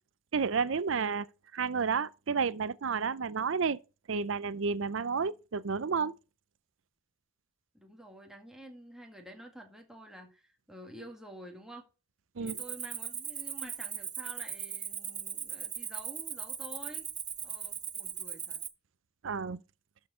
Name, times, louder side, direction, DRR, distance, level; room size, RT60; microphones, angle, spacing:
voice 1, 0.3-1.3 1.5-3.8 4.1-6.1 12.4-12.6 19.2-19.6, right 5 dB, 65° right, 0.5 m, -31 dB
voice 2, 7.7-11.9 12.4-17.1 17.4-18.6, right 1 dB, ahead, 1.8 m, -49 dB
Cricket, 12.5-18.7, right 8 dB, 20° right, 0.8 m, -39 dB
12.0 x 4.6 x 4.9 m
head